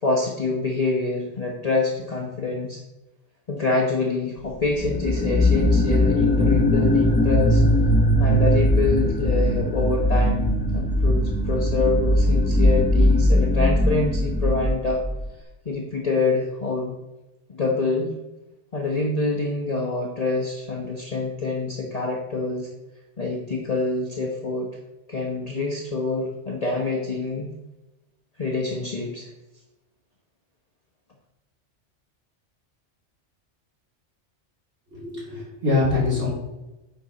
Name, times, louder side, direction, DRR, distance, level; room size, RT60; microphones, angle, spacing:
voice 1, 0.0-2.8 3.5-7.6 8.2-15.0 15.6-17.0 17.5-18.1 18.7-22.7 23.2-24.7 25.1-27.5 28.4-29.3, left 3 dB, 35° left, -2 dB, 1.2 m, -26 dB
sound 1, 4.7-15.3, left 1 dB, 10° left, 0.8 m, -20 dB
voice 2, 34.9-36.3, left 3 dB, 70° right, -7 dB, 3.6 m, -23 dB
9.5 x 6.2 x 4.2 m, 1.0 s
omnidirectional pair, 1.2 m